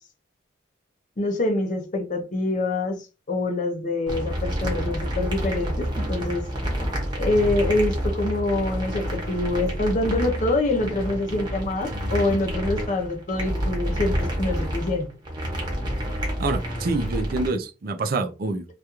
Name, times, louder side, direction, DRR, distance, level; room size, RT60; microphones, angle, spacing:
voice 1, 1.2-6.5 7.2-15.1, left 2 dB, 40° left, 0.5 m, -25 dB
sound 1, 4.1-17.5, equal, 25° right, 0.8 m, -28 dB
voice 2, 16.4-18.7, right 3 dB, 50° right, 0.4 m, -26 dB
2.4 x 2.3 x 2.8 m
head